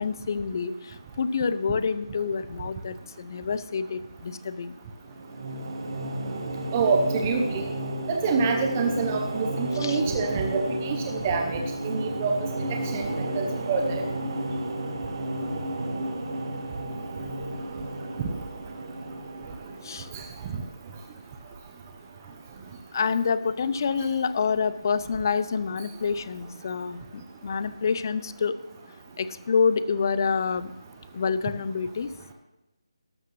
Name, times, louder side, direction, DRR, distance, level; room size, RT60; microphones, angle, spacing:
voice 1, 0.0-4.7 9.7-10.0 19.8-20.1 22.9-28.5 29.2-30.7 31.1-32.1, left 5 dB, 40° left, 14 dB, 0.6 m, -27 dB
sound 1, 5.0-20.3, right 1 dB, 50° right, 1.6 m, -32 dB
voice 2, 6.7-7.7 8.1-12.3 12.7-14.0 20.1-20.2 20.5-20.6, right 4 dB, 25° right, 3 dB, 0.8 m, -27 dB
13.0 x 12.0 x 3.2 m, 1.0 s
figure-of-eight pair, 160°, 3 cm